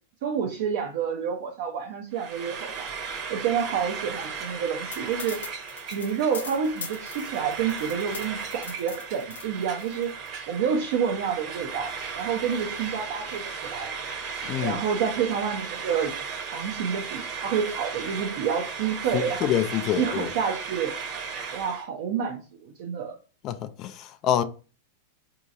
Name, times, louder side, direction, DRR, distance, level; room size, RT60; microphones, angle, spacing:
voice 1, 0.2-2.9 3.3-5.4 5.9-10.1 10.5-13.9 14.6-16.1 16.5-19.5 20.0-20.9 21.5-23.2, right 7 dB, 60° right, 0.6 m, -28 dB
Frying (food), 2.1-21.9, right 6 dB, 40° right, 1.0 m, -36 dB
sound 1, 4.9-10.3, left 6 dB, 80° left, 0.6 m, -41 dB
voice 2, 14.5-14.8 19.1-20.3 23.4-24.4, left 10 dB, 40° left, 0.3 m, -26 dB
3.7 x 2.8 x 2.5 m
hypercardioid pair, 100°, 0 cm